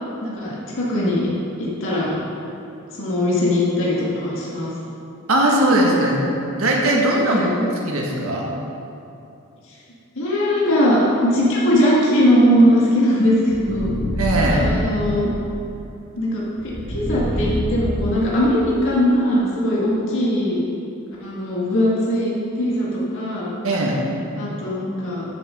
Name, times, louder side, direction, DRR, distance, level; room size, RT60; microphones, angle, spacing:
voice 1, 0.2-1.3 1.6-2.1 2.9-4.7 7.3-7.6 10.2-13.9 14.5-15.3 16.2-16.4 16.9-20.6 21.2-23.5 24.4-25.3, equal, 60° left, -6 dB, 1.8 m, -20 dB
voice 2, 5.3-7.5 7.9-8.5 14.2-14.7 23.6-24.0, right 1 dB, 70° right, -2 dB, 1.7 m, -19 dB
sound 1, 13.5-15.1 16.6-18.4, left 1 dB, 40° left, 1.7 m, -25 dB
13.5 x 7.2 x 3.8 m, 2.7 s
head